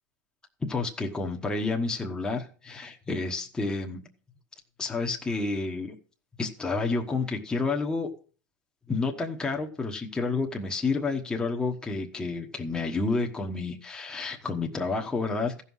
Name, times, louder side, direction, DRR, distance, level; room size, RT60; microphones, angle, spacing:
voice 1, 0.6-4.0 4.8-5.9 6.4-8.1 8.9-15.6, left 3 dB, 10° left, 1 dB, 1.2 m, -30 dB
15.0 x 5.6 x 6.3 m, 0.39 s
supercardioid pair, 150°, 9 cm